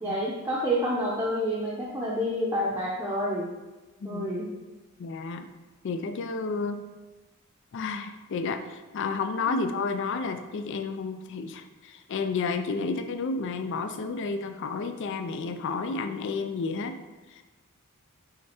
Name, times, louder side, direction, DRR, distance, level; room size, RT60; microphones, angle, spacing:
voice 1, 0.0-3.5 4.0-4.4 9.5-9.6, equal, 10° right, -6 dB, 0.7 m, -28 dB
voice 2, 4.0-4.4 5.0-5.5 5.8-6.9 7.7-17.0 17.3-17.4, left 4 dB, 55° left, 8 dB, 0.4 m, -31 dB
6.4 x 3.4 x 4.3 m, 1.2 s
head